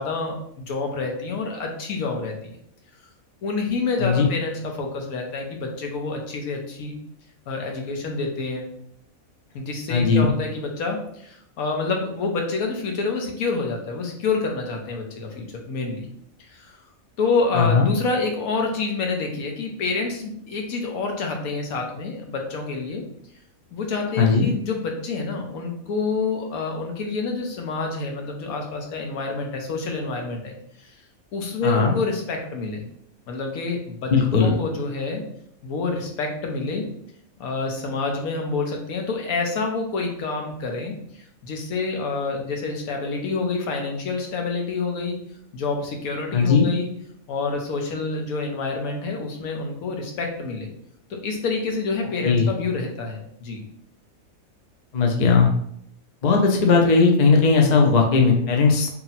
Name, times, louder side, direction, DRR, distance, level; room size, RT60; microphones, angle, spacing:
voice 1, 0.0-2.5 3.4-7.0 7.5-8.7 9.5-16.1 16.4-16.8 17.2-23.0 23.7-30.5 30.8-31.0 31.3-32.9 33.3-34.1 34.4-35.2 35.6-36.8 37.4-45.2 45.5-46.9 47.3-50.7 51.1-53.6, left 4 dB, 80° left, 2 dB, 1.2 m, -28 dB
voice 2, 9.9-10.3 17.5-17.9 24.2-24.5 31.6-31.9 34.1-34.5 46.3-46.7 52.2-52.5 54.9-55.5 56.2-58.9, left 4 dB, 55° left, 1 dB, 0.4 m, -17 dB
2.8 x 2.8 x 4.0 m, 0.70 s
omnidirectional pair, 1.5 m